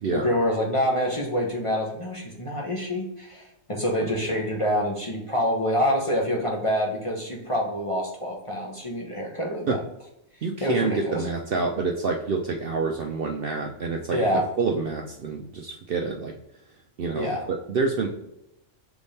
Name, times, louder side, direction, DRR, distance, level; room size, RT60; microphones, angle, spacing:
voice 1, 0.1-9.8 10.6-11.2 14.1-14.5 17.1-17.4, equal, 30° left, -1 dB, 0.7 m, -26 dB
voice 2, 4.0-4.4 9.7-9.8 10.4-14.2 14.6-16.3 17.0-18.1, right 4 dB, 60° right, 2 dB, 0.6 m, -28 dB
3.5 x 3.5 x 4.0 m, 0.83 s
omnidirectional pair, 1.4 m